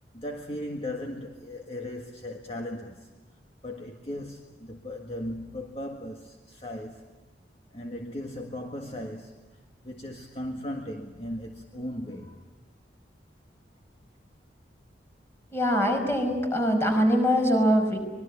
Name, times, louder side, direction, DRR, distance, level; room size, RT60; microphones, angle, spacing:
voice 1, 0.1-3.1 3.6-7.1 7.7-12.4, left 1 dB, 35° left, 1.8 m, -37 dB
voice 2, 15.5-18.0, equal, 15° left, 5.4 m, -23 dB
25.5 x 22.0 x 8.7 m
head